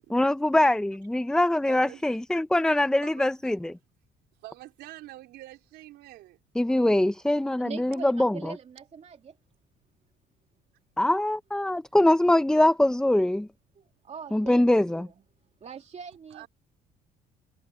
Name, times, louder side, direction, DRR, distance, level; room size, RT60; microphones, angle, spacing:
voice 1, 0.1-3.7 6.5-8.6 11.0-13.5 14.3-15.1, left 1 dB, 5° left, 0.7 m, -23 dB
voice 2, 1.7-2.0 3.0-3.3 4.4-6.4 6.7-7.0 16.3-16.5, right 16 dB, 85° right, 4.4 m, -46 dB
voice 3, 7.6-9.4 13.7-15.1 15.6-16.5, right 6 dB, 40° right, 2.9 m, -42 dB
cardioid pair, 110°, 17 cm